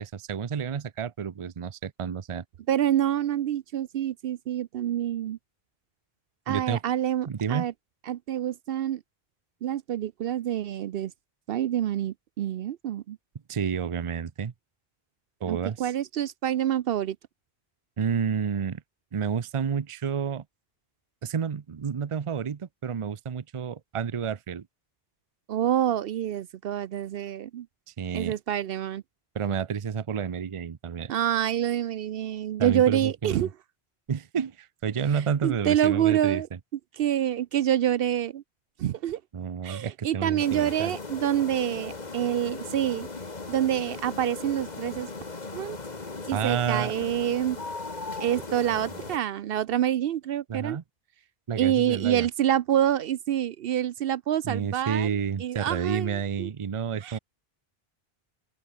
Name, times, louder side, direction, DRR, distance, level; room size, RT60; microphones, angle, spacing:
voice 1, 0.0-2.4 6.5-6.8 7.3-7.7 13.5-14.5 15.4-15.9 18.0-18.8 19.1-20.4 21.2-24.7 28.0-28.4 29.3-31.1 32.6-33.5 34.1-36.6 39.3-40.9 46.3-46.9 50.5-50.8 51.5-52.3 54.4-57.2, right 7 dB, 35° right, 0.6 m, -30 dB
voice 2, 2.7-5.4 6.5-7.7 8.1-9.0 9.6-11.1 11.5-13.2 15.5-17.2 25.5-27.7 28.1-29.0 31.1-33.5 35.4-36.5 37.0-38.4 38.8-39.2 39.6-43.1 43.5-45.1 45.5-45.8 46.3-47.6 48.2-50.8 51.6-55.1 55.4-56.5 57.0-57.2, right 11 dB, 70° right, 0.7 m, -27 dB
sound 1, 40.4-49.2, left 3 dB, 45° left, 1.9 m, -38 dB
open air
omnidirectional pair, 1.0 m